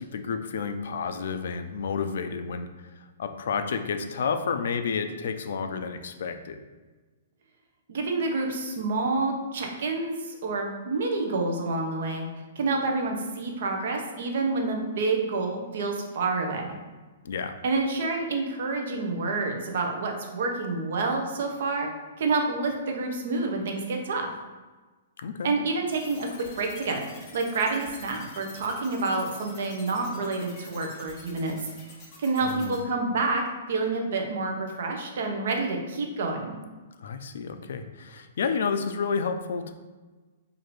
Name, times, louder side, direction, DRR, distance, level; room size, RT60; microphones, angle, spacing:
voice 1, 0.0-2.7 3.2-6.6 17.2-17.6 25.2-25.5 32.4-32.8 37.0-39.7, left 5 dB, 65° left, 8 dB, 0.3 m, -30 dB
voice 2, 7.9-12.3 12.6-16.7 17.6-21.9 22.2-24.3 25.4-26.3 26.6-31.6 32.2-33.4 33.7-36.5, right 3 dB, 55° right, 2 dB, 0.7 m, -28 dB
sound 1, 25.9-32.8, left 3 dB, 20° left, 0.7 m, -48 dB
4.7 x 2.5 x 3.1 m, 1.3 s
hypercardioid pair, 170°, 0 cm